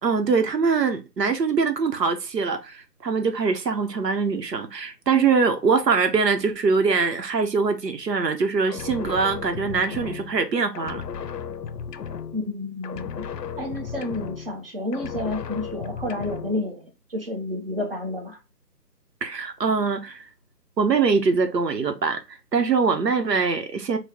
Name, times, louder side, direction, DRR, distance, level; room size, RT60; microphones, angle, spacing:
voice 1, 0.0-11.0 19.2-20.2 20.8-24.0, right 5 dB, 80° right, 0.9 m, -23 dB
sound 1, 8.7-10.5 10.7-12.6 12.8-14.7 14.9-16.6, left 7 dB, 75° left, 0.6 m, -35 dB
voice 2, 12.3-13.2 13.6-18.4, left 1 dB, 35° right, 0.9 m, -30 dB
3.3 x 2.2 x 3.5 m
figure-of-eight pair, 160°, 49 cm